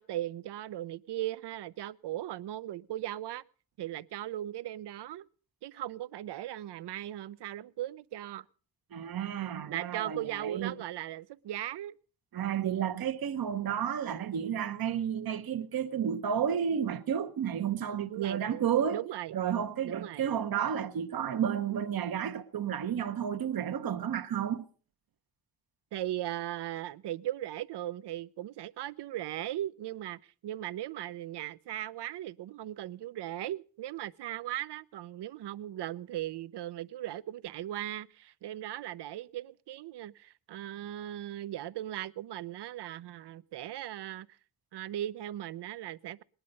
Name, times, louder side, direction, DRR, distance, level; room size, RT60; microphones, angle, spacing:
voice 1, 0.0-3.4 3.8-5.3 5.6-8.5 9.6-12.0 18.1-18.6 18.9-19.4 19.8-20.3 25.9-44.3 44.7-46.2, right 13 dB, 85° right, 0.6 m, -38 dB
voice 2, 8.9-10.7 12.3-19.0 19.3-24.7, right 8 dB, 60° right, 0.9 m, -31 dB
19.5 x 10.5 x 5.3 m
wide cardioid pair, 125°, 40 cm